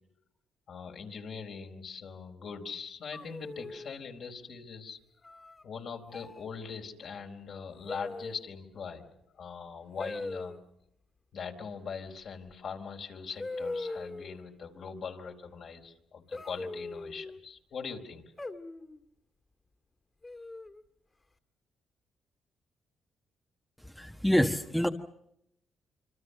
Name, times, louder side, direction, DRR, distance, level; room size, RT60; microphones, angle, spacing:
voice 1, 0.7-5.0 5.6-9.1 9.4-10.5 11.3-18.2, left 6 dB, 60° left, 3 dB, 4.2 m, -41 dB
sound 1, 3.1-4.0 5.2-5.6 6.1-6.4 7.9-8.5 10.0-10.6 12.5-12.6 13.4-14.4 16.3-17.4 18.4-19.0 20.2-20.8, left 2 dB, 25° left, 2.4 m, -40 dB
voice 2, 23.8-24.9, equal, 5° left, 5 dB, 1.3 m, -27 dB
27.0 x 25.0 x 6.7 m, 0.77 s
cardioid pair, 90°, 0 cm